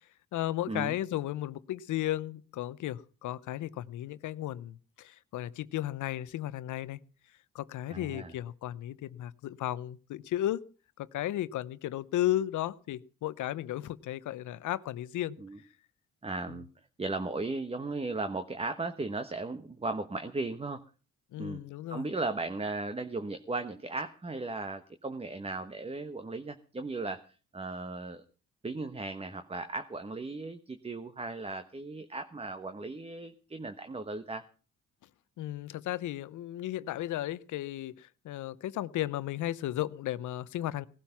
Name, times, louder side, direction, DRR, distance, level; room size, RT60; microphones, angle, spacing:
voice 1, 0.3-7.0 7.5-10.6 11.0-15.4 16.5-16.6 21.3-22.1 35.4-40.9, left 13 dB, 80° left, 16 dB, 0.9 m, -34 dB
voice 2, 7.9-8.3 15.4-15.6 16.2-16.6 17.0-20.8 21.4-21.6 21.9-27.2 27.5-28.2 28.6-34.5, right 3 dB, 20° right, 8 dB, 1.2 m, -36 dB
18.5 x 12.0 x 5.9 m, 0.38 s
cardioid pair, 90°, 30 cm